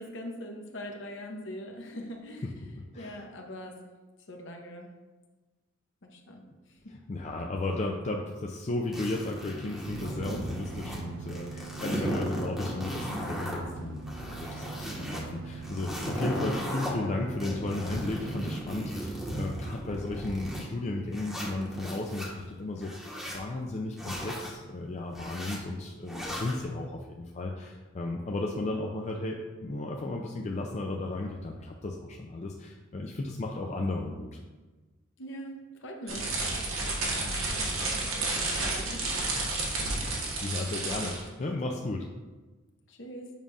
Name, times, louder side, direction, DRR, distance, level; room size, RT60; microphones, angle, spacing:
voice 1, 0.0-3.8 4.3-4.9 6.0-6.4 6.7-6.9 35.2-39.4 42.9-43.3, equal, 65° left, 2 dB, 0.9 m, -43 dB
voice 2, 2.9-3.2 6.9-22.9 23.3-34.4 40.4-42.1, left 2 dB, 35° left, 0 dB, 0.4 m, -34 dB
sound 1, 8.9-11.0 11.3-13.6 14.0-15.2 15.6-16.9 17.4-20.6 21.1-22.3 22.8-23.4 24.0-24.5 25.1-25.6 26.1-26.6, equal, ahead, 1.0 m, -36 dB
sound 2, 9.9-18.6, right 5 dB, 65° right, 0.3 m, -43 dB
sound 3, 36.1-41.3, right 2 dB, 90° right, 1.3 m, -31 dB
7.2 x 2.5 x 5.4 m, 1.2 s
head